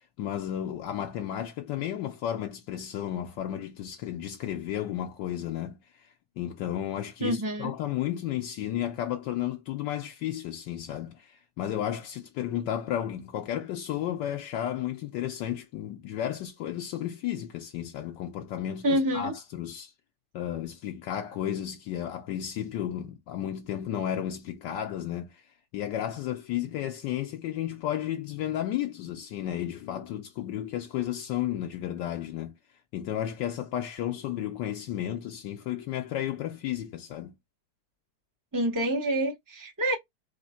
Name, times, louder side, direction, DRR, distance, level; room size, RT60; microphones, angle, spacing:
voice 1, 0.2-19.9 20.3-25.4 25.7-32.5 32.9-37.3, left 11 dB, 75° left, 1.3 m, -33 dB
voice 2, 7.2-7.7 18.8-19.3 38.5-40.0, right 1 dB, 25° right, 0.4 m, -27 dB
3.6 x 3.4 x 4.2 m
omnidirectional pair, 1.9 m